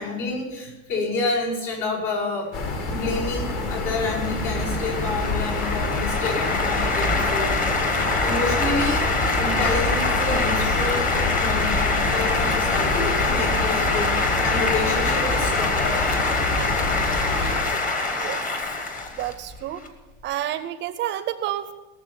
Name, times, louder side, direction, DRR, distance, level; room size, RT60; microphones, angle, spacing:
voice 1, 0.0-2.5 2.9-7.6 7.9-9.1 9.4-16.3, left 3 dB, 65° left, -4 dB, 5.8 m, -28 dB
sound 1, 2.5-17.6, left 3 dB, 50° left, 2.2 m, -27 dB
sound 2, 3.2-19.9, left 3 dB, 25° left, 1.3 m, -25 dB
voice 2, 18.1-18.4 19.1-19.8 20.2-21.7, right 12 dB, 35° right, 12 dB, 0.5 m, -29 dB
17.5 x 6.9 x 7.0 m, 1.1 s
cardioid pair, 165°, 35 cm